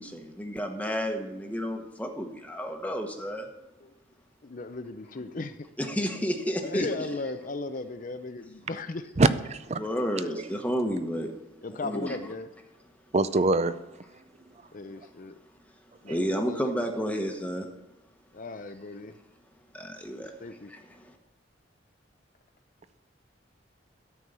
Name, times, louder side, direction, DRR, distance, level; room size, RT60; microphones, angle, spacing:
voice 1, 0.0-3.5 5.8-6.9 9.8-11.3 11.8-12.2 16.1-17.7 19.7-20.4 20.7-21.2, equal, 10° left, 1.1 m, -31 dB
voice 2, 4.4-5.7 6.6-9.0 10.2-10.3 11.6-12.5 14.7-15.3 16.0-17.2 18.3-19.2 20.4-20.7, left 3 dB, 45° left, 0.6 m, -37 dB
voice 3, 9.2-9.8 10.4-10.5 13.1-13.8, right 3 dB, 35° right, 0.5 m, -23 dB
13.0 x 4.7 x 6.7 m
head